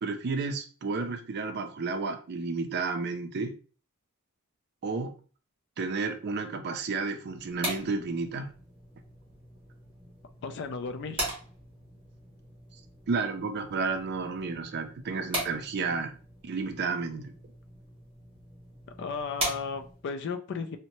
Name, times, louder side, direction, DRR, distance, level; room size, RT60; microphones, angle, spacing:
voice 1, 0.0-3.6 4.8-5.1 5.8-8.5 13.1-16.2 16.4-17.3, right 4 dB, 50° right, 7 dB, 0.4 m, -31 dB
sound 1, 7.2-20.1, right 1 dB, 25° right, 0.9 m, -40 dB
voice 2, 10.4-11.3 19.0-20.8, left 5 dB, 55° left, 8 dB, 0.3 m, -35 dB
2.7 x 2.1 x 2.9 m, 0.39 s
head